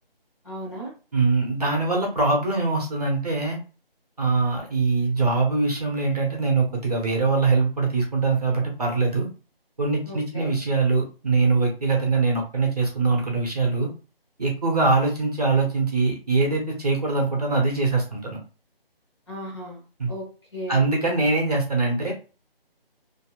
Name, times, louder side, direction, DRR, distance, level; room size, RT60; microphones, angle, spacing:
voice 1, 0.4-0.9 10.0-10.5 19.3-20.3 20.5-20.9, equal, 30° left, -4 dB, 1.1 m, -36 dB
voice 2, 1.1-3.6 4.2-9.3 9.8-13.9 14.4-18.4 20.0-20.1 20.7-22.1, right 3 dB, 40° right, 0 dB, 0.8 m, -23 dB
2.7 x 2.7 x 2.3 m, 0.34 s
figure-of-eight pair, 165°, 30 cm